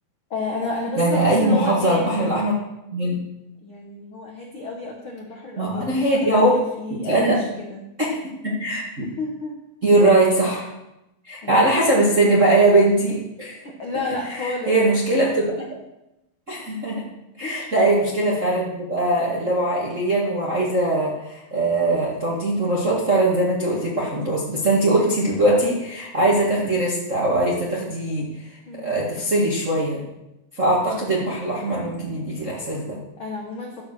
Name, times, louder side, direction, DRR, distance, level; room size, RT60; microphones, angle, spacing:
voice 1, 0.3-2.3 3.6-7.8 9.0-9.6 11.4-11.7 13.6-14.7 15.6-15.7 17.4-17.7 28.7-28.9 33.2-33.8, left 2 dB, 65° left, -1 dB, 1.3 m, -31 dB
voice 2, 1.0-2.5 2.9-3.2 5.6-6.6 6.9-7.4 8.1-9.1 9.8-10.7 11.3-13.6 14.4-15.5 16.5-17.0 17.4-28.3 28.8-30.0 30.6-33.0, right 1 dB, 35° right, -5 dB, 1.2 m, -21 dB
14.5 x 5.0 x 6.5 m, 0.91 s
omnidirectional pair, 4.4 m